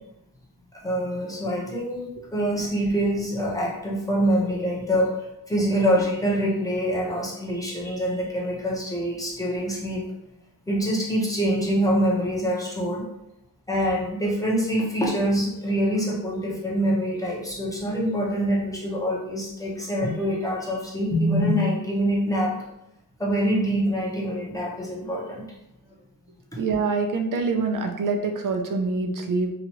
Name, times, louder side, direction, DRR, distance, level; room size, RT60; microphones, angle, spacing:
voice 1, 0.7-10.1 10.7-13.0 13.7-22.5 23.2-25.4, equal, 10° left, -5 dB, 0.9 m, -25 dB
voice 2, 26.6-29.5, right 4 dB, 55° right, 4 dB, 0.5 m, -25 dB
2.9 x 2.4 x 2.9 m, 0.84 s
wide cardioid pair, 90°, 38 cm